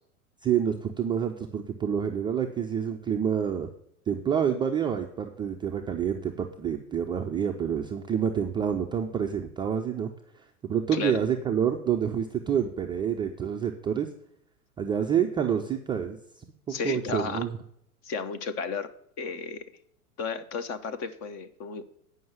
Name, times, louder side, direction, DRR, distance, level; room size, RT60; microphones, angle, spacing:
voice 1, 0.4-3.7 4.1-10.1 10.4-14.1 14.8-16.2 16.7-17.5, right 8 dB, 10° right, 2 dB, 0.4 m, -28 dB
voice 2, 16.7-17.4 18.0-18.9 19.2-19.6 20.2-21.9, left 5 dB, 35° left, 11 dB, 1.1 m, -33 dB
9.2 x 5.6 x 7.3 m, 0.69 s
hypercardioid pair, 95°, 44 cm